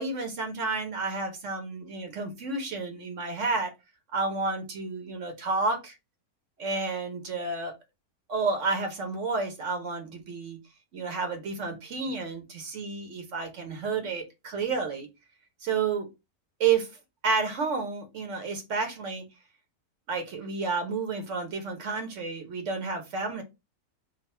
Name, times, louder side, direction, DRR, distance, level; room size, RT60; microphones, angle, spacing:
voice 1, 0.0-3.7 4.1-6.0 6.6-7.7 8.3-10.6 10.9-15.1 15.6-16.1 16.6-16.9 17.2-19.2 20.1-23.4, right 4 dB, 55° right, 1.3 m, -30 dB
3.8 x 2.2 x 4.3 m
omnidirectional pair, 1.6 m